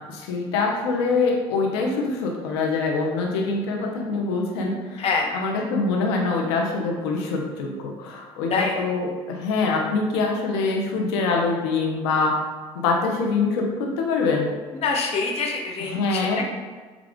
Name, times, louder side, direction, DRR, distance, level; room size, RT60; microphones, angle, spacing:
voice 1, 0.1-5.1 5.3-12.3 12.8-14.5 15.8-16.4, left 4 dB, 90° left, 0 dB, 0.7 m, -24 dB
voice 2, 5.0-5.3 8.5-8.7 14.8-16.4, left 4 dB, 50° left, 1 dB, 0.9 m, -25 dB
5.1 x 2.4 x 3.5 m, 1.4 s
supercardioid pair, 90°, 13 cm